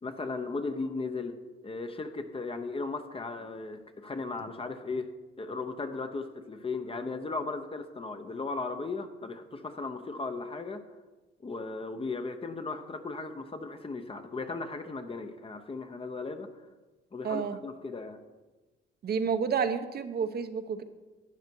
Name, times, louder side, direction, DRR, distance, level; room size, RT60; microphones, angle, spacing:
voice 1, 0.0-1.4 1.6-5.1 5.4-10.8 11.4-16.5 17.1-18.2, left 3 dB, 30° left, 7 dB, 0.9 m, -36 dB
voice 2, 17.2-17.6 19.0-20.8, right 6 dB, 50° right, 9 dB, 0.9 m, -30 dB
11.5 x 9.3 x 4.6 m, 1.2 s
cardioid pair, 90°, 20 cm